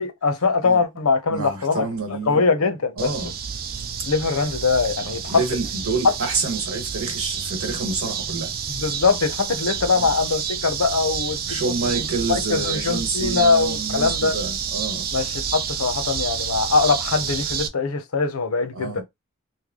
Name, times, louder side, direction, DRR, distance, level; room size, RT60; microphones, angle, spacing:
voice 1, 0.0-1.8 2.3-3.1 4.1-5.4 8.7-14.3 15.1-19.0, left 4 dB, 90° left, 0.8 m, -22 dB
voice 2, 1.3-2.4 3.0-3.3 5.0-8.5 9.9-10.1 11.5-15.1 18.7-19.0, right 3 dB, 85° right, 1.3 m, -28 dB
sound 1, 3.0-17.7, right 7 dB, 45° right, 0.5 m, -29 dB
3.2 x 2.1 x 3.6 m
head